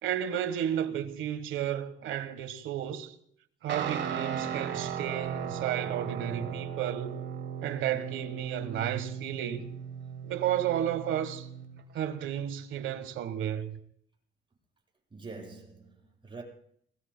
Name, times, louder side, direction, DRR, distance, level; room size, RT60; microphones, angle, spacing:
voice 1, 0.0-3.1 3.6-7.2 7.6-9.7 10.2-11.5 11.9-13.8, right 10 dB, 85° right, 1.3 m, -32 dB
Guitar, 3.7-11.8, right 7 dB, 65° right, 1.8 m, -37 dB
voice 2, 15.1-16.4, right 3 dB, 25° right, 8.0 m, -45 dB
28.0 x 20.5 x 2.2 m
cardioid pair, 90°, 20 cm